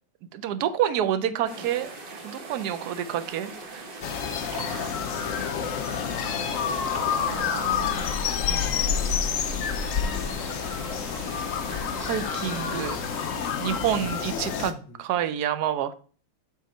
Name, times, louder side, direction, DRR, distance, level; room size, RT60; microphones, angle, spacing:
voice 1, 0.3-1.9 2.2-3.8 4.6-5.0 6.9-7.9 11.7-13.0 13.6-14.7 15.0-15.9, right 10 dB, 70° right, 11 dB, 1.0 m, -29 dB
voice 2, 0.8-1.7 7.7-9.1 12.5-13.0 14.0-15.0, left 3 dB, 85° left, 8 dB, 1.6 m, -43 dB
sound 1, 1.5-13.5, right 3 dB, 40° right, 0.8 m, -41 dB
sound 2, 4.0-14.7, left 7 dB, 70° left, 0.7 m, -28 dB
7.3 x 3.7 x 4.3 m, 0.40 s
omnidirectional pair, 2.1 m